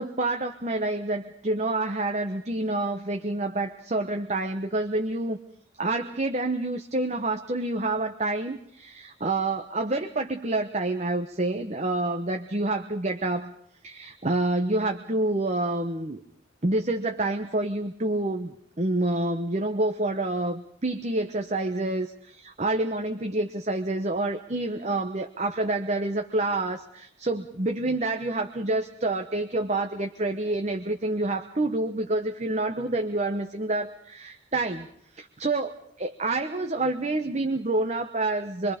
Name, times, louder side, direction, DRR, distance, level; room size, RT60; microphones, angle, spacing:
voice 1, 0.0-5.4 5.8-13.5 13.8-16.2 16.6-34.9 35.1-35.7 36.0-38.7, right 2 dB, 35° right, 5 dB, 1.0 m, -28 dB
25.5 x 23.5 x 5.2 m, 0.68 s
head